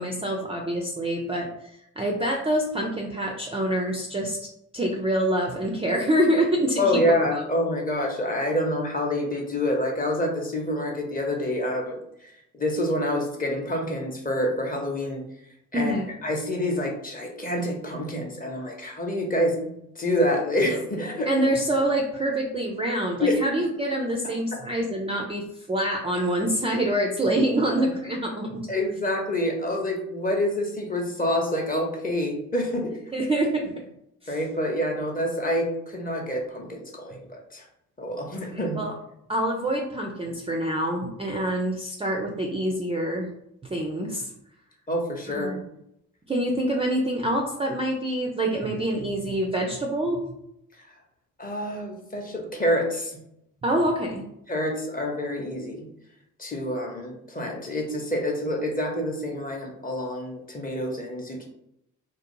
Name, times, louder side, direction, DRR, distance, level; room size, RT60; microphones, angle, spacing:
voice 1, 0.0-4.4 4.7-7.0 7.3-7.4 15.7-16.1 21.3-28.7 33.1-33.7 34.2-34.4 38.4-38.9 39.3-43.3 43.7-44.3 45.3-45.7 46.3-50.2 53.6-54.2, right 1 dB, 15° right, 0 dB, 0.4 m, -26 dB
voice 2, 6.8-12.0 12.5-15.2 15.7-19.6 20.0-21.3 23.2-23.4 28.7-32.9 34.3-37.6 38.0-38.8 44.9-45.6 51.4-53.1 54.5-55.8 56.4-61.5, left 1 dB, 20° left, 1 dB, 0.7 m, -27 dB
2.4 x 2.0 x 3.0 m, 0.77 s
hypercardioid pair, 50°, 41 cm